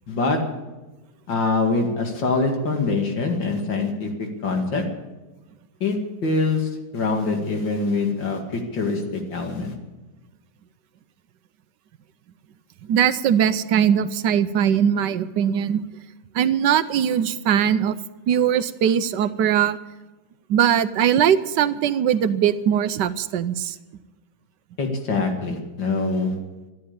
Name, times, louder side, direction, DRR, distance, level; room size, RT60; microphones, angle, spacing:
voice 1, 0.1-0.4 1.3-4.8 5.8-6.0 6.2-9.7 24.8-26.3, left 3 dB, 85° left, 3 dB, 2.9 m, -24 dB
voice 2, 12.9-15.8 16.3-18.0 18.3-19.8 20.5-23.8, right 9 dB, 75° right, 14 dB, 1.3 m, -20 dB
14.0 x 10.5 x 8.6 m, 1.1 s
omnidirectional pair, 2.0 m